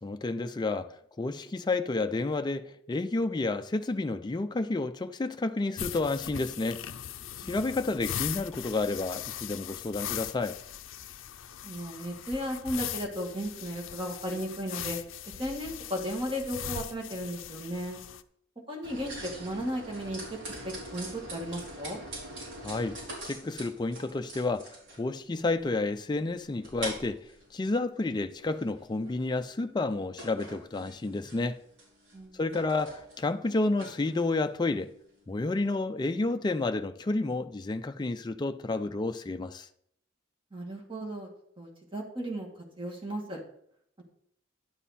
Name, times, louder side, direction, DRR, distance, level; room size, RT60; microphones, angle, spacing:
voice 1, 0.0-0.9 1.2-6.8 7.4-10.6 22.6-23.0 23.2-24.7 25.0-27.2 27.5-31.6 32.4-34.9 35.3-39.7, left 2 dB, 20° left, 0.4 m, -30 dB
sound 1, 5.8-18.2, left 10 dB, 90° left, 0.5 m, -40 dB
voice 2, 11.6-15.0 15.4-18.0 18.7-20.2 20.6-22.0 32.1-32.5 40.5-41.3 41.6-42.5 42.8-43.4, equal, 25° right, 1.9 m, -35 dB
sound 2, 18.8-35.8, right 1 dB, 80° right, 4.0 m, -44 dB
11.0 x 7.2 x 4.2 m
head